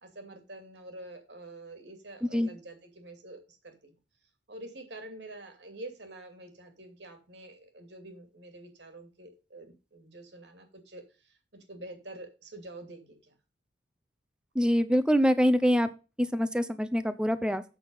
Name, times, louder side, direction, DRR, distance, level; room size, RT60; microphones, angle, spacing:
voice 1, 0.0-3.9 4.5-13.3, right 2 dB, 65° right, 6 dB, 2.7 m, -47 dB
voice 2, 14.6-15.9 16.3-17.6, equal, 5° right, 12 dB, 0.7 m, -24 dB
8.1 x 6.5 x 5.5 m, 0.32 s
head